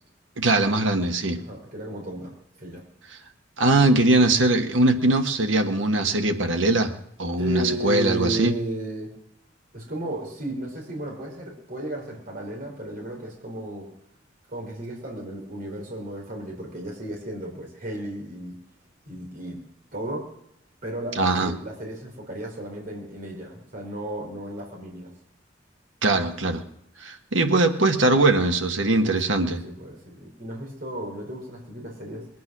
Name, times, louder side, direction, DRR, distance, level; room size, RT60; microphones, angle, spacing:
voice 1, 0.4-1.4 3.6-6.9 7.2-8.5 21.2-21.5 26.0-26.6 27.0-29.6, right 2 dB, 90° right, 5 dB, 1.6 m, -21 dB
voice 2, 1.3-2.8 7.4-9.1 9.7-13.9 14.5-18.6 19.1-19.6 19.9-20.3 20.8-25.1 29.0-29.2 29.6-32.3, right 1 dB, 50° right, 0 dB, 4.2 m, -34 dB
21.5 x 9.4 x 6.1 m, 0.77 s
head